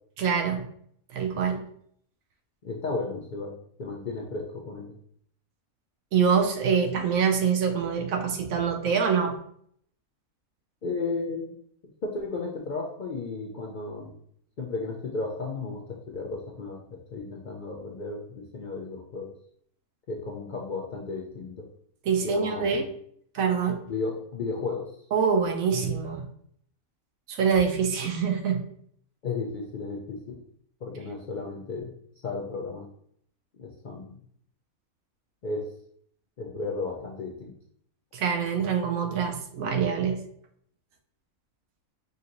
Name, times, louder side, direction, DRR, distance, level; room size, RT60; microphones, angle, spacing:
voice 1, 0.2-0.6 1.1-1.6 6.1-9.4 22.0-22.9 23.3-23.8 25.1-26.3 27.3-28.6 38.1-40.2, right 6 dB, 75° right, 4 dB, 1.0 m, -25 dB
voice 2, 2.6-4.9 10.8-11.5 11.8-14.2 14.6-19.3 20.1-21.7 22.2-22.9 23.9-24.9 29.2-30.4 30.8-31.9 32.2-32.9 33.6-34.2 35.4-35.7 36.4-37.5, left 3 dB, 60° left, -2 dB, 0.5 m, -34 dB
5.3 x 2.9 x 2.6 m, 0.65 s
omnidirectional pair, 1.5 m